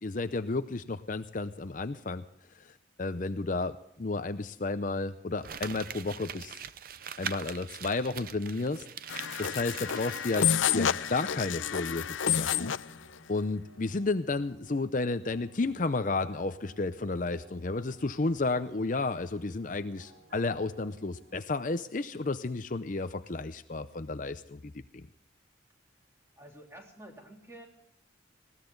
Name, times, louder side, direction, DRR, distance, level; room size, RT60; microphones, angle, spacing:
voice 1, 0.0-2.2 2.5-6.6 7.2-8.9 9.4-12.7 13.3-25.1, left 3 dB, 40° left, 11 dB, 0.6 m, -32 dB
Crumpling crinkling, 5.4-11.2 11.5-11.6, right 8 dB, 50° right, 0.6 m, -42 dB
sound 1, 9.1-12.9, left 8 dB, 85° left, 0.6 m, -29 dB
sound 2, 10.3-22.8, right 2 dB, 70° right, 5.5 m, -58 dB
voice 2, 26.4-27.7, right 1 dB, 15° right, 1 dB, 3.3 m, -49 dB
20.0 x 16.5 x 3.9 m, 0.73 s
head